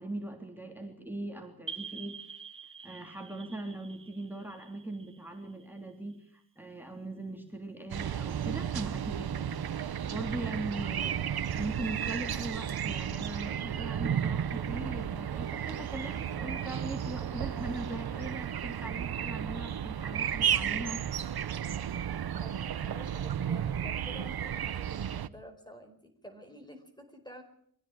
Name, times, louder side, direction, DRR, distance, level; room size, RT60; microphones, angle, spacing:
voice 1, 0.0-2.2 2.8-9.6 10.0-21.0, right 1 dB, 5° right, 2 dB, 3.4 m, -40 dB
sound 1, 1.7-6.1, right 5 dB, 35° right, 1.3 m, -46 dB
sound 2, 7.9-25.3, right 9 dB, 90° right, 0.9 m, -33 dB
voice 2, 22.4-27.4, equal, 10° left, 6 dB, 4.6 m, -50 dB
24.0 x 16.0 x 9.0 m, 0.67 s
wide cardioid pair, 75°, 36 cm